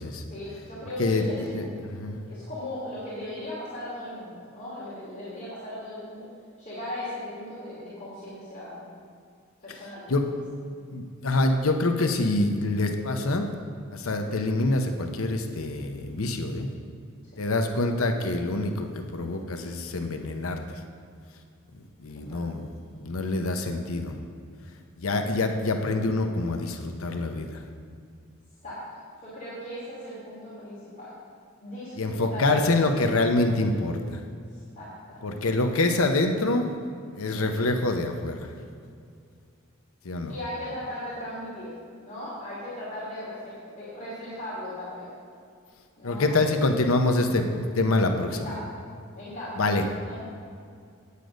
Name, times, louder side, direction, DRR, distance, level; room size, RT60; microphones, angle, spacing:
voice 1, 0.2-1.8 2.3-6.2 6.6-8.8 9.6-10.2 22.3-22.6 28.6-28.8 29.2-31.1 31.6-32.8 34.5-35.3 40.3-41.7 42.0-45.1 46.0-46.3 48.2-48.7 49.1-49.6 50.0-50.2, left 1 dB, 40° left, -9 dB, 2.8 m, -38 dB
voice 2, 1.5-2.3 10.1-10.3 10.9-13.5 13.9-16.7 17.4-20.8 22.0-22.6 23.0-24.2 25.0-27.6 32.0-34.2 35.2-36.7 37.2-38.5 40.0-40.3 46.0-48.3 49.6-49.8, left 2 dB, 80° left, 5 dB, 0.9 m, -26 dB
9.4 x 8.4 x 5.2 m, 2.3 s
head